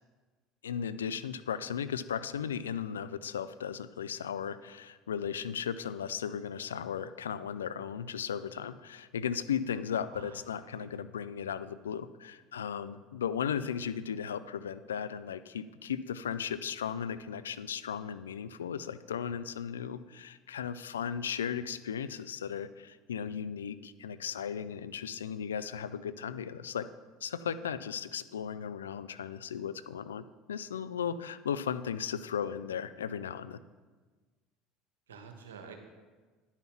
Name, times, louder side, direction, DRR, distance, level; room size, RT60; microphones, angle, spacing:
voice 1, 0.6-26.9 27.2-33.6, left 8 dB, 90° left, 14 dB, 0.3 m, -36 dB
voice 2, 10.1-10.9 35.1-35.8, right 6 dB, 85° right, 4 dB, 1.3 m, -50 dB
10.5 x 5.7 x 5.9 m, 1.4 s
hypercardioid pair, 75°, 0 cm